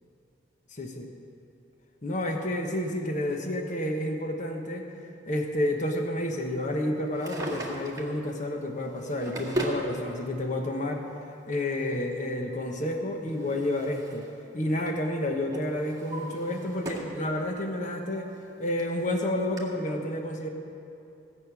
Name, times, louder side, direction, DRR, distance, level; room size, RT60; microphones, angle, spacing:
voice 1, 0.7-1.1 2.0-4.9 5.3-11.0 11.5-14.3 14.5-18.3 18.6-20.5, left 1 dB, 45° left, 3 dB, 1.2 m, -30 dB
Drawer open or close, 7.0-8.2 8.9-9.9 10.9-11.0 12.8-14.3 14.6-15.0 15.5-17.2 17.6-17.7 18.5-18.6 18.8-18.9 19.6-19.7, right 1 dB, 20° right, 2.1 m, -37 dB
17.5 x 6.6 x 8.9 m, 2.7 s
head